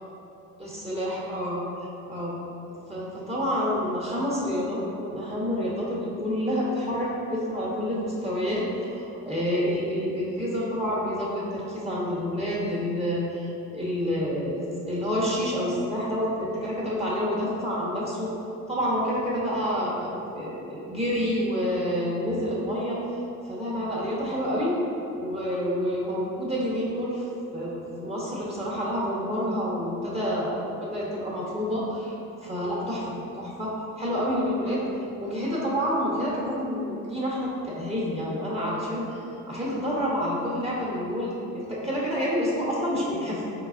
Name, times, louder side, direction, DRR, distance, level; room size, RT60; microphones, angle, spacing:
voice 1, 0.6-2.5 2.9-18.3 18.7-23.0 23.4-24.8 25.1-27.3 27.5-33.7 34.0-34.8 35.2-39.2 39.5-43.4, equal, 15° right, -7 dB, 1.0 m, -28 dB
4.0 x 3.9 x 2.5 m, 2.9 s
supercardioid pair, 70°, 35 cm